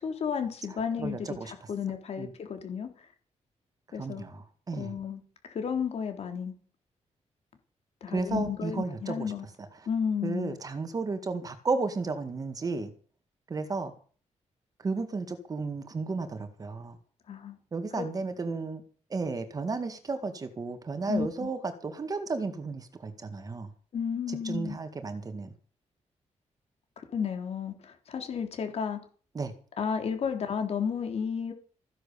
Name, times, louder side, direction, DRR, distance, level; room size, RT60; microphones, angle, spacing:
voice 1, 0.0-2.9 3.9-4.2 4.8-5.2 5.5-6.5 8.0-9.5 9.9-10.6 17.3-17.6 17.9-18.1 21.1-21.5 23.9-24.8 27.0-29.0 29.8-31.5, left 7 dB, 55° left, 6 dB, 3.5 m, -32 dB
voice 2, 1.0-1.5 2.2-2.3 4.0-4.9 8.1-9.3 10.2-12.9 13.5-13.9 14.8-17.0 17.7-18.8 19.1-23.7 24.3-25.5 29.4-29.5, right 4 dB, 30° right, 9 dB, 1.9 m, -33 dB
15.5 x 10.5 x 6.9 m, 0.41 s
wide cardioid pair, 175°, 12 cm